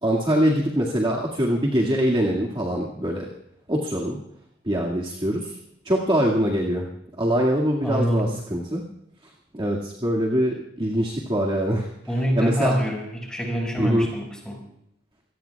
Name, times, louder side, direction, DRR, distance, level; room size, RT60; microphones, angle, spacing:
voice 1, 0.0-3.3 3.7-4.2 4.7-5.5 5.9-6.9 7.2-8.8 9.5-11.9 12.4-12.7 13.8-14.1, equal, 25° right, -3 dB, 2.0 m, -23 dB
voice 2, 7.8-8.3 12.1-14.6, equal, 5° left, -1 dB, 5.6 m, -25 dB
26.0 x 18.5 x 2.3 m, 0.74 s
head